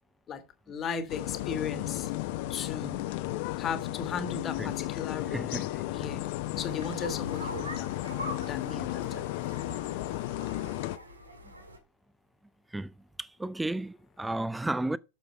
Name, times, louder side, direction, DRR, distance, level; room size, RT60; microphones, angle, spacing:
voice 1, 0.7-2.1 2.5-3.0 3.6-5.4 5.9-6.3 6.6-7.9 8.5-9.3, left 6 dB, 25° left, 1.5 m, -36 dB
sound 1, 1.1-11.0, left 15 dB, 50° left, 0.7 m, -34 dB
voice 2, 5.3-5.8 12.7-12.9 13.2-15.0, right 2 dB, 5° right, 0.4 m, -33 dB
sound 2, 6.5-11.8, right 1 dB, 80° right, 1.8 m, -43 dB
8.3 x 6.8 x 4.5 m
figure-of-eight pair, 90°, 0 cm